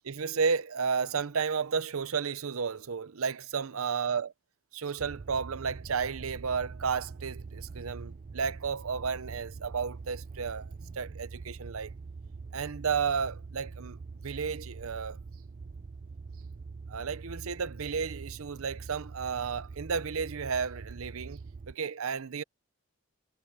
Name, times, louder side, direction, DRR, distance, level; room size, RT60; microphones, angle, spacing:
voice 1, 0.0-4.3 4.7-11.9 12.5-14.0 14.2-15.2 16.9-21.4 21.7-22.4, right 5 dB, 80° right, 0.7 m, -32 dB
sound 1, 5.0-21.7, right 4 dB, 40° right, 0.4 m, -44 dB
head